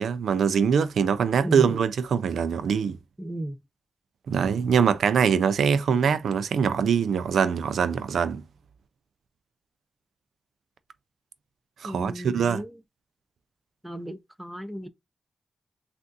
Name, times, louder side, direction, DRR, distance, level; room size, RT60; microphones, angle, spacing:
voice 1, 0.0-3.0 4.3-8.4 11.8-12.6, right 7 dB, 85° right, 0.4 m, -23 dB
voice 2, 3.2-3.6 11.8-12.7 13.8-14.9, right 1 dB, 5° right, 0.7 m, -33 dB
3.4 x 2.5 x 2.6 m
cardioid pair, 45°, 0 cm